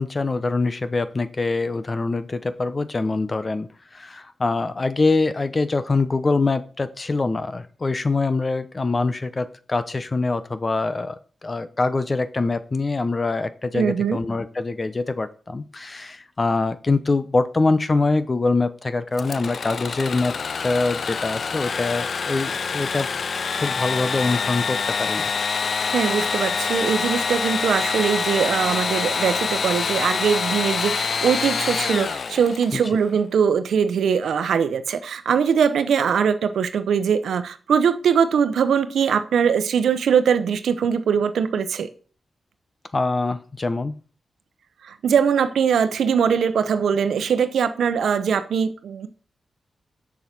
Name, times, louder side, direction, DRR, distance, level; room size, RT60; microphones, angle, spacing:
voice 1, 0.0-3.7 3.9-11.1 11.4-23.1 23.5-25.3 32.7-32.8 42.9-43.9, left 3 dB, 35° left, 0.9 m, -24 dB
voice 2, 13.7-14.2 25.9-41.9 44.8-49.1, right 7 dB, 85° right, 0.8 m, -21 dB
Engine / Sawing, 19.1-32.9, left 5 dB, 60° left, 0.4 m, -26 dB
7.4 x 6.8 x 6.0 m
cardioid pair, 75°, 0 cm